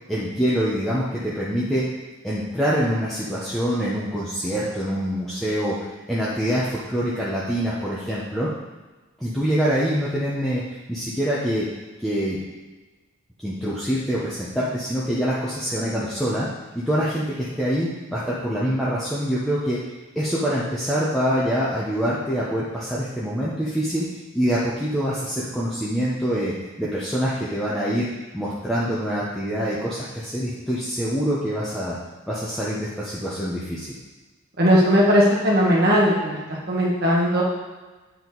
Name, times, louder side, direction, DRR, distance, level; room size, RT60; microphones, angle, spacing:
voice 1, 0.1-1.8 2.2-5.8 6.1-8.5 9.2-10.6 10.9-11.7 12.0-12.4 13.4-16.5 16.7-19.8 20.1-24.1 24.3-28.1 28.3-32.0 32.3-33.9, equal, ahead, -9 dB, 0.9 m, -25 dB
voice 2, 34.6-36.4 36.7-37.4, equal, 50° right, -4 dB, 1.5 m, -18 dB
9.1 x 4.6 x 4.0 m, 1.2 s
head